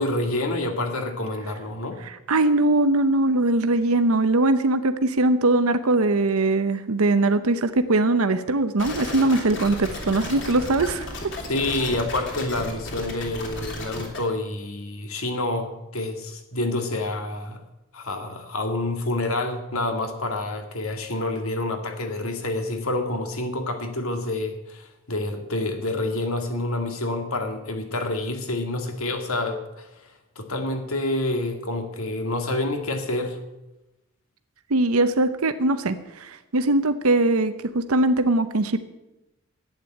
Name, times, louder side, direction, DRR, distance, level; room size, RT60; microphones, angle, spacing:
voice 1, 0.0-2.0 11.5-17.6 17.9-29.9 30.4-33.4, left 2 dB, 75° left, 5 dB, 2.0 m, -28 dB
voice 2, 2.0-11.1 34.7-38.8, right 2 dB, 80° right, 10 dB, 0.8 m, -21 dB
sound 1, 8.8-14.2, left 1 dB, 55° left, 3.0 m, -34 dB
11.5 x 9.0 x 9.0 m, 0.97 s
head